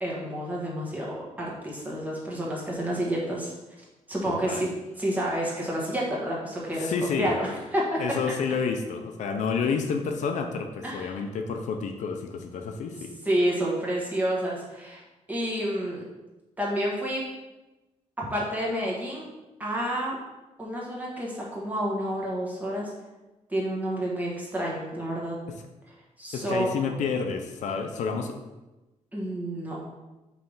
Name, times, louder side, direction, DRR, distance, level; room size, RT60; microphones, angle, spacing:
voice 1, 0.0-3.5 4.1-4.7 5.0-6.9 7.2-7.8 8.1-8.2 10.8-11.2 13.2-15.0 15.3-16.0 16.6-17.2 18.2-19.3 19.6-20.2 20.6-22.9 23.5-25.4 26.2-27.0 29.1-29.8, right 1 dB, 15° right, -4 dB, 1.4 m, -29 dB
voice 2, 4.3-4.7 6.8-7.4 8.0-13.1 26.3-28.4, left 5 dB, 80° left, 5 dB, 0.7 m, -29 dB
5.6 x 3.4 x 5.5 m, 1.1 s
wide cardioid pair, 175°, 12 cm